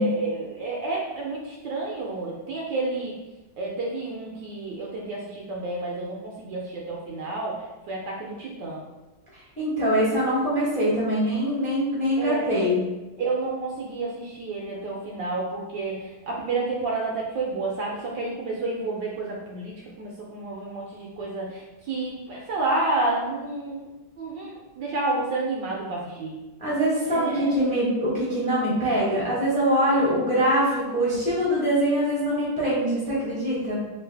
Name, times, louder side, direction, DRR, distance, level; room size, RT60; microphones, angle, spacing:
voice 1, 0.0-3.1 3.6-7.6 7.9-8.8 12.2-12.6 13.2-23.9 24.2-26.4 27.0-27.5 30.0-30.1, right 3 dB, 75° right, -3 dB, 1.1 m, -30 dB
voice 2, 9.6-12.8 26.6-33.8, equal, 5° left, -8 dB, 0.6 m, -23 dB
3.1 x 2.5 x 3.3 m, 1.1 s
omnidirectional pair, 2.2 m